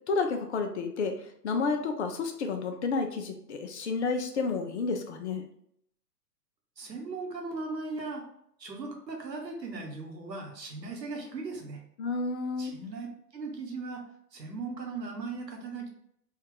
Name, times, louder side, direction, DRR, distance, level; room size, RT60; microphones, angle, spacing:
voice 1, 0.1-1.2 1.4-5.4 12.0-12.7, left 4 dB, 45° left, 5 dB, 0.6 m, -30 dB
voice 2, 6.8-8.2 8.6-11.8 12.6-13.1 13.3-14.0 14.3-15.9, right 3 dB, 80° right, 1 dB, 1.2 m, -38 dB
3.5 x 2.4 x 3.7 m, 0.70 s
figure-of-eight pair, 115°, 49 cm